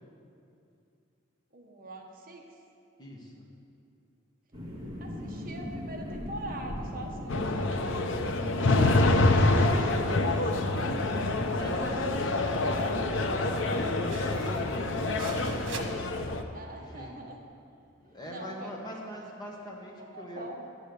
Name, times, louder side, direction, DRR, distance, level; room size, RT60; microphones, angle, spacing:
voice 1, 1.5-2.4 5.0-8.2 8.6-11.2 16.5-17.4 18.3-18.7 19.1-19.3 20.0-20.7, right 1 dB, 45° right, 1 dB, 1.1 m, -42 dB
voice 2, 3.0-3.5 11.5-16.1 16.7-17.2 18.0-20.4, equal, 20° left, -2 dB, 1.6 m, -42 dB
sound 1, 4.5-16.0, equal, 20° right, 1.9 m, -41 dB
sound 2, 7.3-16.4, left 2 dB, 80° left, 0.7 m, -26 dB
sound 3, 9.9-15.8, right 4 dB, 90° right, 1.3 m, -47 dB
11.5 x 8.1 x 6.9 m, 2.6 s
head